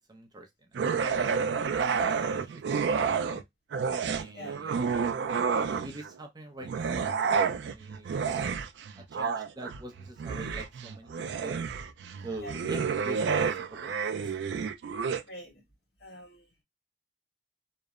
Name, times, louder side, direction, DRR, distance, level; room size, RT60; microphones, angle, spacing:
voice 1, 0.1-3.4 4.0-5.2 5.6-8.4 9.0-11.6 12.2-13.9 14.2-14.3, right 2 dB, 25° right, 0.6 m, -45 dB
sound 1, 0.7-3.4 3.7-6.1 6.6-15.2, right 6 dB, 80° right, 0.3 m, -30 dB
voice 2, 15.2-15.6 16.0-16.5, equal, 65° left, 1.4 m, -45 dB
2.9 x 2.0 x 2.2 m
head